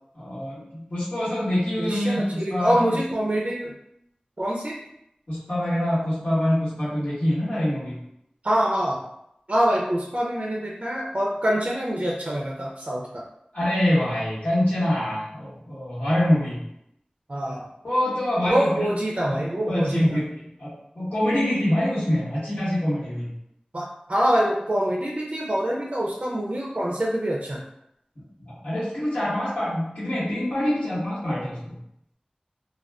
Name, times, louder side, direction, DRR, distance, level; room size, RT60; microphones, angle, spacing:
voice 1, 0.1-2.8 5.3-8.0 13.5-16.6 17.8-18.9 19.7-20.2 20.6-23.3 28.4-31.8, left 1 dB, 65° left, -14 dB, 1.2 m, -25 dB
voice 2, 1.8-3.7 4.4-4.8 8.4-9.0 9.5-13.2 17.3-17.7 18.5-20.2 23.7-27.6, equal, 45° right, -3 dB, 0.4 m, -25 dB
2.4 x 2.2 x 3.4 m, 0.78 s
wide cardioid pair, 50°, 3 cm